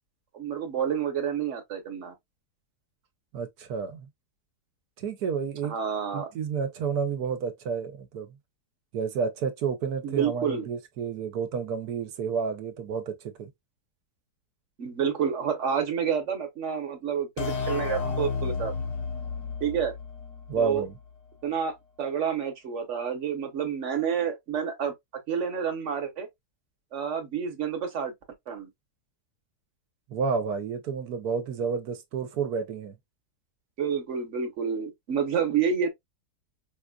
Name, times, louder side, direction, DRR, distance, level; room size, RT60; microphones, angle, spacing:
voice 1, 0.3-2.1 5.6-6.3 10.0-10.7 14.8-18.7 19.6-19.9 20.6-20.8 21.4-24.9 25.3-26.3 26.9-28.1 28.5-28.7 33.8-35.9, right 7 dB, 50° right, 1.3 m, -29 dB
voice 2, 3.3-4.1 5.0-5.7 6.1-8.3 8.9-13.5 20.5-20.9 30.1-33.0, right 6 dB, 75° right, 1.2 m, -30 dB
sound 1, 17.4-20.9, left 5 dB, 75° left, 1.4 m, -32 dB
5.0 x 2.4 x 2.3 m
omnidirectional pair, 1.7 m